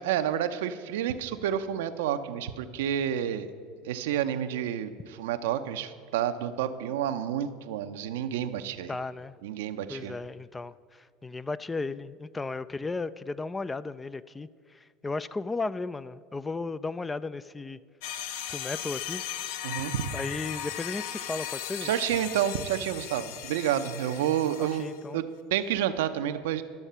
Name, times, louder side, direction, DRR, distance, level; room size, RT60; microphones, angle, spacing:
voice 1, 0.0-3.5 3.8-9.0 9.4-10.1 19.6-20.1 21.8-24.9 25.1-26.6, right 10 dB, 75° right, 10 dB, 0.6 m, -29 dB
voice 2, 8.9-9.3 9.9-17.8 18.5-19.2 20.1-21.9 24.8-25.2, left 3 dB, 15° left, 16 dB, 0.3 m, -35 dB
sound 1, 18.0-25.0, left 10 dB, 70° left, 0.6 m, -37 dB
12.0 x 7.1 x 5.5 m, 2.2 s
hypercardioid pair, 80°, 0 cm